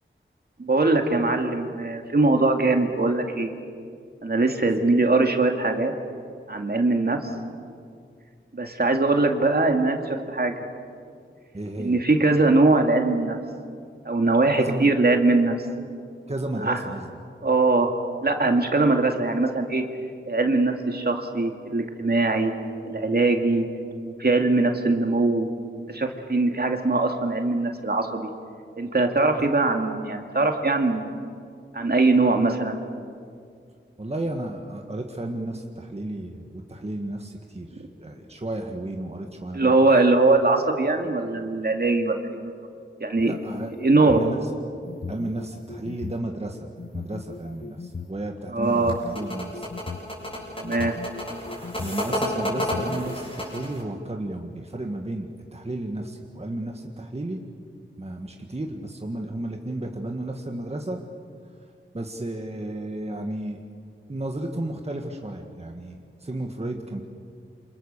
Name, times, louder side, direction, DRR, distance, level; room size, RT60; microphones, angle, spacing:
voice 1, 0.6-3.5 4.2-5.9 6.5-7.3 8.5-10.5 11.8-13.4 14.1-15.5 16.6-16.8 17.4-17.9 18.2-19.8 20.3-22.5 22.9-23.7 24.0-25.5 25.9-28.3 28.8-31.1 31.7-32.8 37.8-37.9 39.5-42.4 43.0-43.3 43.8-44.2 48.5-49.0 50.6-50.9, right 3 dB, 50° right, 4 dB, 2.3 m, -21 dB
voice 2, 11.5-12.0 14.5-14.9 16.3-17.1 29.4-29.5 34.0-39.8 43.2-43.8 44.0-44.5 45.1-49.7 51.8-57.4 58.0-61.0 61.6-63.6 64.1-67.0, right 1 dB, 30° right, 2 dB, 1.8 m, -33 dB
sound 1, 43.2-44.3 44.9-46.2 46.8-48.1 48.7-50.1 50.6-52.0 52.5-53.2, left 4 dB, 50° left, 1.0 m, -37 dB
sound 2, 48.6-53.8, left 1 dB, 25° left, 7.1 m, -30 dB
28.0 x 26.5 x 6.8 m, 2.3 s
wide cardioid pair, 75°, 21 cm